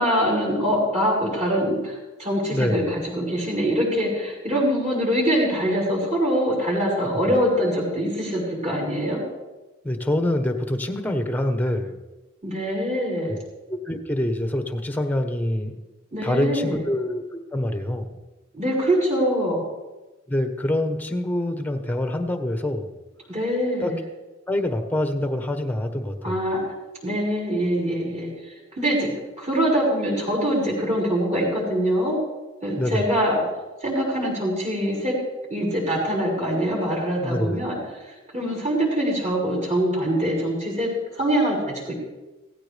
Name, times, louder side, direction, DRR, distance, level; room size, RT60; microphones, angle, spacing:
voice 1, 0.0-9.2 12.4-13.3 16.1-16.8 18.5-19.6 23.3-24.0 26.2-26.6 27.0-29.1 29.4-32.2 32.6-33.5 33.8-35.1 35.5-40.9 41.1-41.9, equal, 35° right, -5 dB, 5.9 m, -24 dB
voice 2, 2.5-2.9 9.8-12.0 13.2-13.3 13.7-15.8 16.2-18.2 20.3-22.9 23.8-23.9 24.5-26.4 32.8-33.0 37.2-37.6, left 1 dB, 10° left, 6 dB, 1.2 m, -25 dB
16.5 x 16.0 x 3.5 m, 1.1 s
head